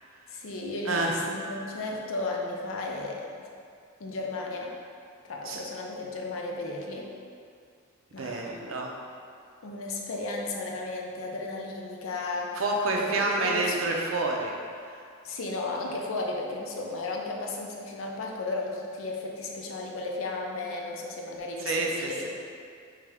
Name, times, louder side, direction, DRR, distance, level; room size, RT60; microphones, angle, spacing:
voice 1, 0.3-3.5 4.0-4.7 5.3-7.1 8.1-8.6 9.6-12.6 13.0-13.8 15.2-22.3, left 2 dB, 80° left, 0 dB, 0.5 m, -34 dB
voice 2, 0.9-1.2 5.5-5.6 8.2-8.9 12.5-14.6 21.6-22.3, right 2 dB, 80° right, 0 dB, 0.6 m, -28 dB
3.6 x 3.2 x 3.4 m, 2.3 s
head